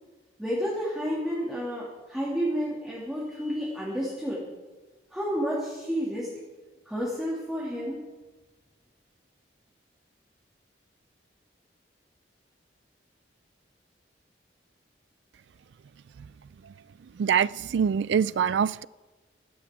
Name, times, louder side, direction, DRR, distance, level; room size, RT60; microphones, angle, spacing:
voice 1, 0.4-4.4 5.1-6.3 6.9-8.0, equal, ahead, 2.3 m, -30 dB
voice 2, 17.2-18.8, right 7 dB, 70° right, 0.3 m, -24 dB
16.5 x 13.5 x 3.6 m
head